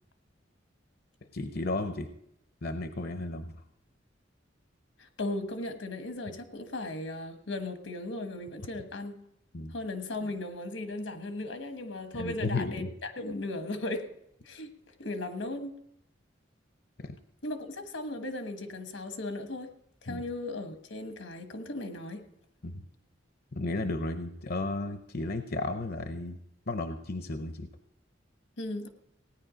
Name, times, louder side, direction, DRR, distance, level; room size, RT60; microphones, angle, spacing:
voice 1, 1.3-2.1 2.6-3.5 9.5-9.7 12.1-12.9 17.0-17.2 20.1-20.2 22.6-22.8 23.5-26.4 26.7-27.7, left 2 dB, 55° left, 8 dB, 0.6 m, -33 dB
voice 2, 5.0-9.2 9.7-14.1 14.4-14.7 15.0-15.7 17.4-19.7 20.0-22.2 28.6-28.9, left 2 dB, 85° left, 7 dB, 1.3 m, -37 dB
17.0 x 9.5 x 5.1 m, 0.76 s
head